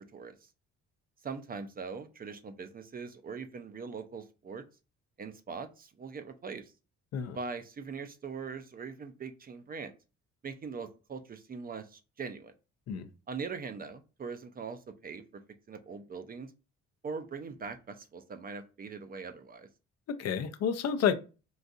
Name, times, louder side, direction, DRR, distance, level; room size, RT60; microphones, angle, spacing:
voice 1, 1.2-4.6 5.2-6.7 7.3-9.9 10.4-12.5 13.3-15.2 15.7-16.5 17.0-19.7, right 5 dB, 30° right, 0.4 m, -41 dB
voice 2, 20.1-21.1, left 7 dB, 55° left, 0.5 m, -30 dB
3.8 x 2.5 x 2.4 m
cardioid pair, 90°, 30 cm